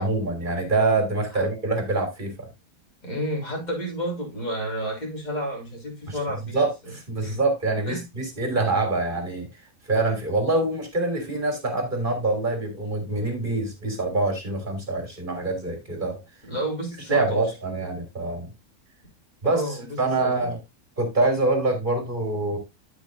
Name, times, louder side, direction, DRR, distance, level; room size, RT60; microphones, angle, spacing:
voice 1, 0.0-2.5 6.1-6.2 6.5-9.5 9.9-16.2 17.1-18.5 19.4-20.6 21.0-22.6, right 2 dB, 35° right, 3.4 m, -25 dB
voice 2, 3.0-6.6 7.2-7.4 7.8-8.0 8.3-8.4 16.4-17.4 19.4-20.5, equal, 30° left, 3.8 m, -31 dB
12.5 x 6.1 x 2.6 m
omnidirectional pair, 1.5 m